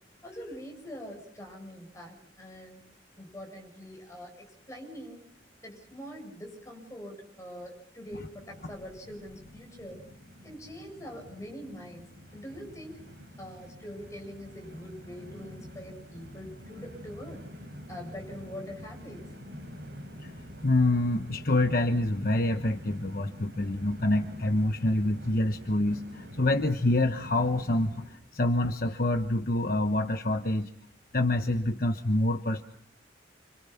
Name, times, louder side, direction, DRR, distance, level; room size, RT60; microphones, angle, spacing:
voice 1, 0.2-2.8 3.2-5.3 5.6-10.1 10.4-13.0 13.4-17.5 17.9-19.2, equal, 15° left, 1 dB, 7.9 m, -44 dB
Train, 8.1-28.1, equal, 65° right, 5.9 m, -46 dB
voice 2, 20.6-30.7 31.1-32.6, left 1 dB, 50° left, 6 dB, 1.1 m, -26 dB
28.5 x 26.5 x 5.8 m, 0.68 s
head